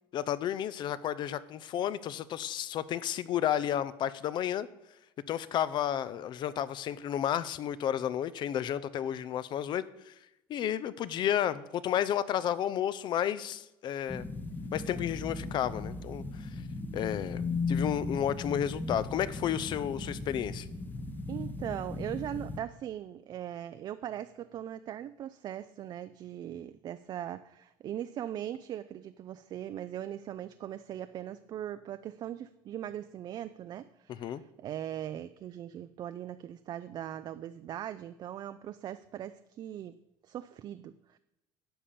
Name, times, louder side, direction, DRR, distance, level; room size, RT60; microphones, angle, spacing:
voice 1, 0.1-4.7 5.3-10.1 10.5-14.2 14.7-16.5 16.9-17.4 17.7-20.7 34.1-34.4, left 10 dB, 50° left, 16 dB, 0.6 m, -32 dB
sound 1, 14.1-22.6, left 3 dB, 20° left, 0.9 m, -37 dB
voice 2, 21.3-40.0 40.2-41.2, right 11 dB, 45° right, 11 dB, 0.4 m, -40 dB
10.0 x 5.7 x 6.9 m, 0.93 s
cardioid pair, 110°, 10 cm